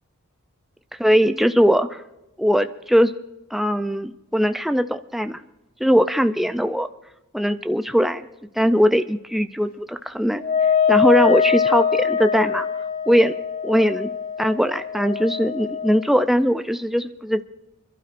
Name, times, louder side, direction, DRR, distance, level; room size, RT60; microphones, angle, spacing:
voice 1, 1.0-2.0 2.4-3.1 3.5-5.4 5.8-6.9 7.3-8.3 8.6-10.4 10.9-12.7 13.1-13.4 13.6-14.1 14.4-17.4, equal, ahead, 9 dB, 0.4 m, -20 dB
Wind instrument woodwind instrument, 10.4-16.1, left 7 dB, 40° left, 0.9 m, -23 dB
29.0 x 12.0 x 2.5 m, 0.94 s
head